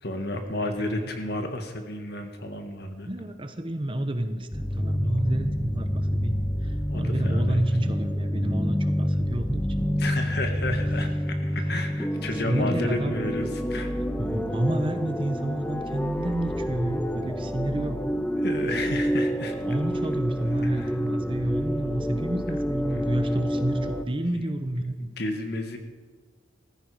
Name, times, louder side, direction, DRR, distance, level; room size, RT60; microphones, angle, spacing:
voice 1, 0.0-3.1 5.0-5.4 6.9-7.6 10.0-13.9 18.4-19.5 20.6-21.0 22.9-23.4 24.3-24.4 25.0-25.8, left 2 dB, 55° left, 5 dB, 1.7 m, -32 dB
voice 2, 0.9-1.2 3.1-6.4 6.6-9.9 10.7-10.8 12.4-13.1 14.2-18.0 19.6-25.0, right 1 dB, 25° right, 8 dB, 0.9 m, -29 dB
sound 1, 4.5-24.0, equal, 5° left, 0.6 m, -28 dB
14.5 x 14.5 x 5.0 m, 1.4 s
head